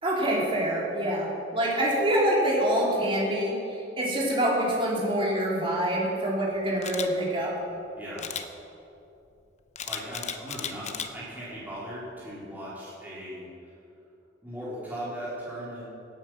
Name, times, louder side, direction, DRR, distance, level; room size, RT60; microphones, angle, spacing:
voice 1, 0.0-7.5, right 1 dB, 30° right, -5 dB, 3.3 m, -26 dB
Camera, 6.8-7.1 8.2-8.5 9.8-11.1 11.6-11.8, left 8 dB, 40° left, 0.7 m, -34 dB
voice 2, 8.0-8.3 9.8-13.5 14.4-15.8, equal, 10° right, -9 dB, 3.1 m, -38 dB
17.5 x 8.9 x 6.0 m, 2.8 s
head